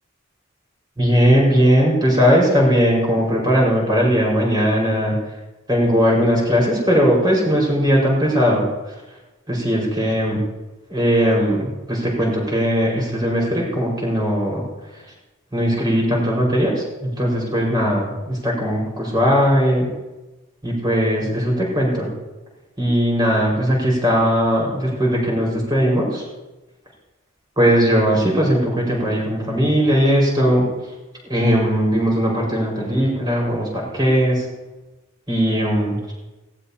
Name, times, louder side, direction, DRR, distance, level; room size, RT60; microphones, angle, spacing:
voice 1, 1.0-5.2 5.7-8.6 9.5-10.4 10.9-14.6 15.5-19.9 20.6-22.1 22.8-26.2 27.6-30.7 31.3-34.4 35.3-36.0, equal, 20° right, -3 dB, 5.1 m, -18 dB
19.0 x 17.0 x 2.9 m, 1.1 s
head